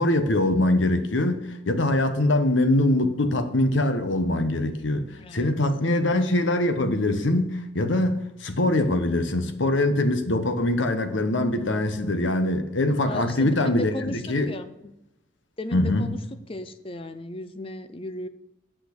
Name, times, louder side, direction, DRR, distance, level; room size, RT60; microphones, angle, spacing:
voice 1, 0.0-5.1 5.3-14.5 15.7-16.1, left 1 dB, 70° left, 1.0 m, -23 dB
voice 2, 5.2-5.5 13.1-14.9 15.6-18.3, left 1 dB, 25° left, 0.6 m, -35 dB
8.3 x 6.3 x 6.5 m
head